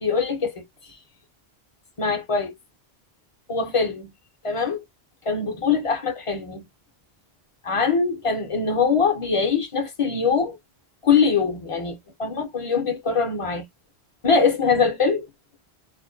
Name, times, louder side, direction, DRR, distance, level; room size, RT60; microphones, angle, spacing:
voice 1, 0.0-0.6 2.0-2.5 3.5-4.1 4.4-4.8 5.3-6.6 7.6-10.6 11.0-13.6 14.2-15.3, left 5 dB, 45° left, 0.5 m, -22 dB
2.4 x 2.1 x 2.5 m
omnidirectional pair, 1.1 m